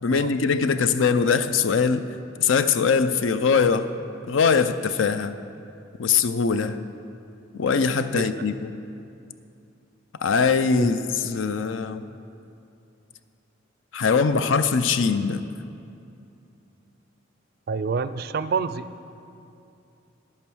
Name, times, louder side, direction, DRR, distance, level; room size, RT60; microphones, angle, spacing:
voice 1, 0.0-2.0 2.4-3.9 4.3-5.3 6.0-6.8 7.5-8.7 10.2-11.0 11.2-12.0 13.9-15.4, left 5 dB, 80° left, 11 dB, 0.5 m, -22 dB
voice 2, 17.7-18.9, right 5 dB, 50° right, 13 dB, 0.4 m, -27 dB
10.5 x 8.7 x 6.2 m, 2.6 s
head